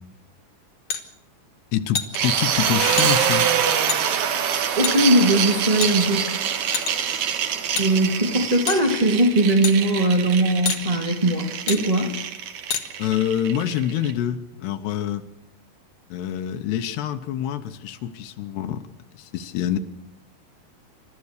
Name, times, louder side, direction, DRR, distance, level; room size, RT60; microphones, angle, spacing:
sound 1, 0.9-1.0 1.9-2.2 3.0-3.1 3.9-4.0 4.8-5.0 5.8-6.2 6.7-7.1 7.8-7.9 8.7-8.9 9.6-9.8 10.7-10.8 11.7-11.8 12.7-12.8, left 7 dB, 60° left, 1.5 m, -26 dB
voice 1, 1.7-3.5 13.0-15.3 16.1-18.9 19.1-19.8, left 10 dB, 80° left, 3.0 m, -26 dB
sound 2, 2.1-14.1, right 8 dB, 60° right, 2.1 m, -25 dB
voice 2, 4.7-6.3 7.8-12.1, right 1 dB, 80° right, 0.3 m, -20 dB
29.5 x 13.5 x 6.6 m
omnidirectional pair, 4.9 m